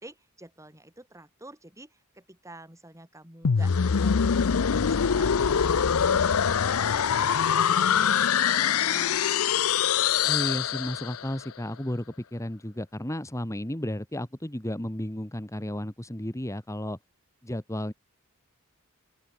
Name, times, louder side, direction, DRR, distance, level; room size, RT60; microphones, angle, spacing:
voice 1, 0.0-9.9, right 1 dB, 15° right, 5.3 m, -49 dB
sound 1, 3.4-11.3, left 7 dB, 70° left, 0.6 m, -24 dB
voice 2, 10.2-17.0 17.4-17.9, left 1 dB, 15° left, 1.7 m, -33 dB
open air
head